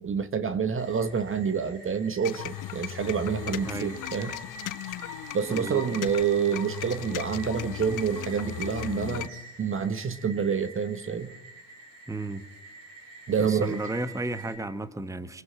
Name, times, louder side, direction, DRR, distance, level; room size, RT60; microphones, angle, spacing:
voice 1, 0.0-4.3 5.3-9.3 9.6-11.3 13.3-13.8, right 6 dB, 25° right, 12 dB, 1.7 m, -28 dB
sound 1, 0.8-14.6, right 3 dB, 45° right, 6.7 m, -46 dB
sound 2, 2.2-9.3, left 14 dB, 45° left, 1.1 m, -37 dB
voice 2, 3.7-4.0 5.5-5.8 12.1-12.4 13.4-15.4, right 2 dB, 5° right, 11 dB, 1.6 m, -33 dB
26.0 x 22.0 x 8.6 m, 0.87 s
hypercardioid pair, 75°, 45 cm